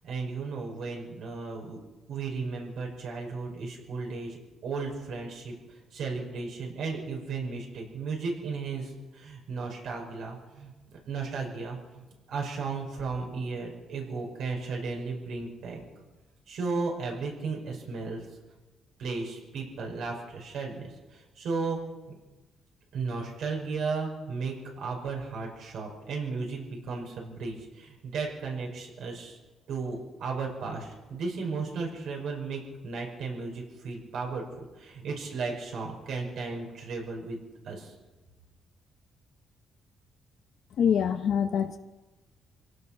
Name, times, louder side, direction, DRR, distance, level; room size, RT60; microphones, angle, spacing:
voice 1, 0.0-1.8 2.1-15.8 16.5-18.3 19.0-21.8 22.1-22.2 22.9-29.4 29.7-34.4 34.8-37.4 37.6-37.9, right 4 dB, 70° right, 0 dB, 5.6 m, -35 dB
voice 2, 40.8-41.8, left 8 dB, 55° left, 7 dB, 0.8 m, -25 dB
25.5 x 17.5 x 5.8 m, 1.2 s
cardioid pair, 160°, 0 cm